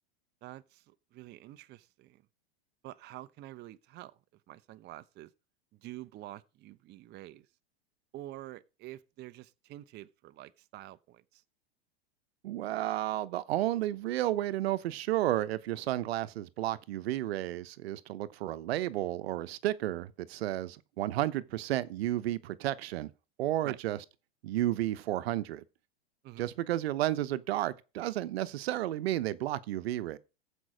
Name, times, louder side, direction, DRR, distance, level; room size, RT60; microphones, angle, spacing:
voice 1, 0.4-2.2 2.8-4.1 4.5-5.3 5.7-7.5 8.1-11.4 23.6-23.8 26.2-26.5, right 16 dB, 35° right, 0.7 m, -47 dB
voice 2, 12.4-23.1 23.4-24.0 24.4-25.6 26.4-30.2, right 14 dB, 70° right, 0.9 m, -32 dB
14.5 x 5.4 x 6.2 m
hypercardioid pair, 115°, 32 cm